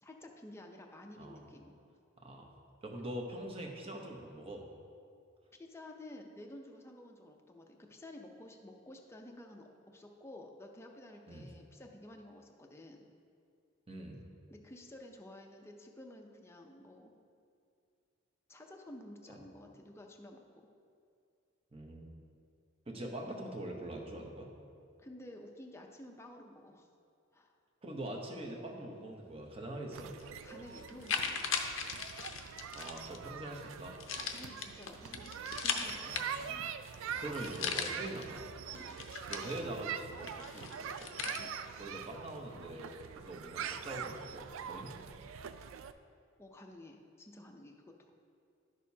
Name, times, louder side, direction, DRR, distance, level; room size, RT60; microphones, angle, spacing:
voice 1, 0.0-1.8 5.6-13.1 14.5-17.1 18.5-20.7 25.0-26.9 27.3-27.5 30.4-31.5 34.1-36.1 38.8-39.0 41.4-41.5 46.4-47.7 48.0-48.1, left 1 dB, 15° left, 2 dB, 0.5 m, -52 dB
voice 2, 2.2-2.5 2.8-4.6 11.3-11.5 13.9-14.2 21.7-22.1 22.9-24.5 27.8-30.1 32.7-34.0 36.1-36.6 37.2-38.5 39.3-41.1 41.8-44.9, right 1 dB, 30° right, 1 dB, 0.9 m, -43 dB
sound 1, 29.9-45.9, right 8 dB, 80° right, 0.3 m, -44 dB
sound 2, 30.2-30.3 30.8-33.2 34.0-36.6 36.9-37.0 37.2-38.2 38.7-39.9 40.3-41.4, left 6 dB, 75° left, 0.6 m, -38 dB
11.0 x 6.5 x 2.8 m, 2.4 s
head